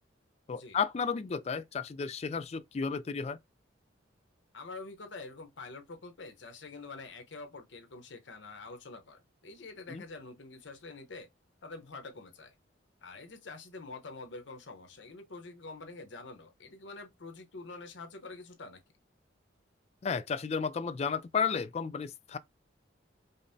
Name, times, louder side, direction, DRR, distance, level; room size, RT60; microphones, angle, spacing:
voice 1, 0.5-3.4 9.9-10.0 20.0-22.4, left 6 dB, 35° left, 0.3 m, -33 dB
voice 2, 4.5-11.3 11.6-12.6 13.0-18.8, left 3 dB, 75° left, 0.9 m, -46 dB
5.2 x 2.0 x 2.7 m
head